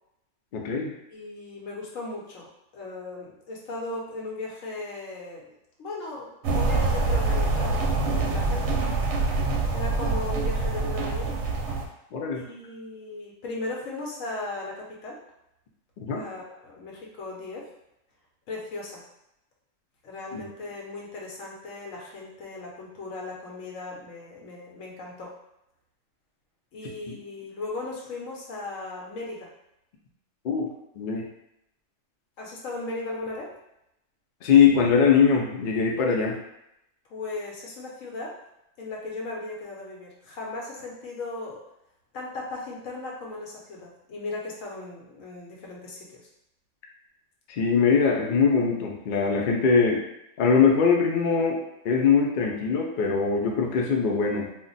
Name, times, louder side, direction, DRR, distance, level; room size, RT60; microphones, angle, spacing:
voice 1, 0.5-0.9 12.1-12.4 16.0-16.2 20.3-20.4 27.1-27.2 30.4-30.7 31.0-31.2 34.4-36.4 47.5-50.0 50.4-51.6 51.8-54.5, left 6 dB, 60° left, 0 dB, 0.5 m, -22 dB
voice 2, 1.1-2.5 2.7-5.5 5.8-7.8 8.1-8.8 9.7-11.3 12.3-15.2 16.1-17.7 18.5-19.1 20.0-25.3 26.7-29.5 32.4-33.5 37.1-38.4 38.8-41.6 42.1-46.3, left 2 dB, 85° left, -2 dB, 1.1 m, -37 dB
sound 1, 6.4-11.9, right 3 dB, 70° right, 0.8 m, -25 dB
2.4 x 2.2 x 3.9 m, 0.83 s
omnidirectional pair, 1.3 m